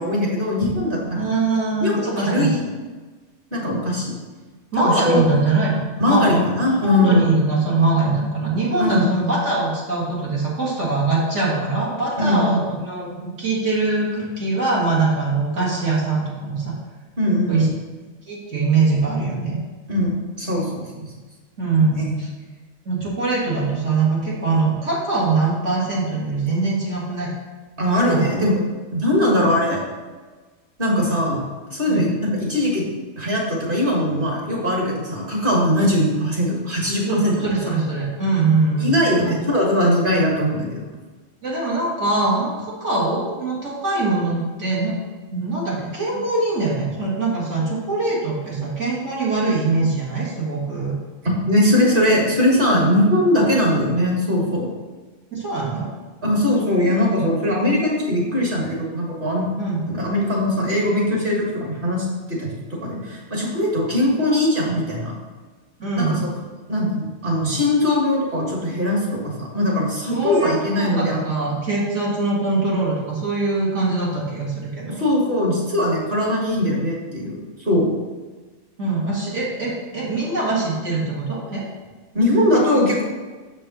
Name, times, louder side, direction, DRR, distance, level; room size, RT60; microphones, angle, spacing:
voice 1, 0.0-1.2 1.8-2.6 3.5-4.1 4.8-5.2 6.0-7.2 8.8-9.1 12.2-12.6 17.2-17.7 19.9-21.1 27.8-28.6 28.9-29.8 30.8-31.4 31.7-32.8 33.2-37.5 38.8-40.8 51.2-54.7 56.2-59.5 60.0-65.1 65.9-66.2 66.7-71.2 74.9-77.9 82.1-83.0, left 1 dB, 40° right, -3 dB, 1.9 m, -20 dB
voice 2, 1.1-2.5 4.7-6.4 6.8-16.7 17.5-17.7 18.3-19.6 21.6-22.3 22.8-27.3 28.0-28.2 31.9-32.2 35.8-35.9 37.1-38.9 39.2-39.3 41.4-45.0 45.3-51.0 55.3-55.9 59.6-59.8 65.8-66.2 70.1-75.0 78.8-81.6, right 3 dB, 60° right, -6 dB, 2.1 m, -22 dB
6.7 x 5.3 x 4.2 m, 1.3 s
omnidirectional pair, 1.4 m